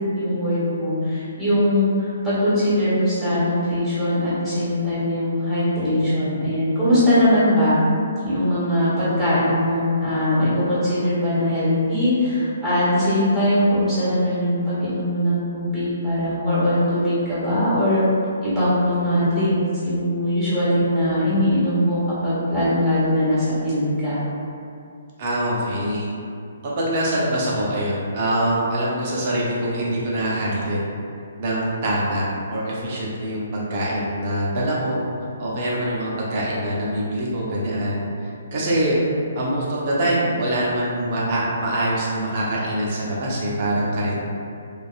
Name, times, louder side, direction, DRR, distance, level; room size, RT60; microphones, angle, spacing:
voice 1, 0.1-7.8 8.2-18.0 18.4-24.2, left 1 dB, ahead, -13 dB, 1.4 m, -21 dB
voice 2, 25.2-26.1 26.6-30.8 31.4-32.2 32.5-35.0 35.4-38.0 38.5-39.0 39.3-44.2, right 1 dB, 40° right, -6 dB, 0.6 m, -24 dB
2.6 x 2.4 x 2.3 m, 2.4 s
figure-of-eight pair, 130°, 0 cm